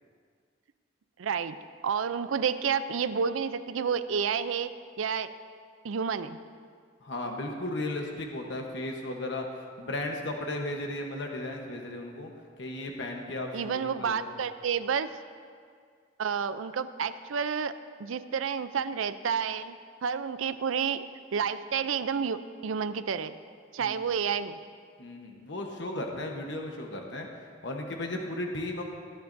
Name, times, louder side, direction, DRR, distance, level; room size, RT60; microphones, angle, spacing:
voice 1, 1.2-1.6 1.8-4.7 5.0-5.3 5.8-6.4 13.5-15.1 16.2-17.7 18.0-21.1 21.3-23.4 23.7-24.6, right 6 dB, 90° right, 13 dB, 0.5 m, -30 dB
voice 2, 7.0-9.5 9.8-12.3 12.6-14.4 23.8-23.9 25.0-27.3 27.6-28.8, left 1 dB, 65° left, 2 dB, 1.0 m, -35 dB
19.5 x 10.5 x 2.6 m, 2.1 s
head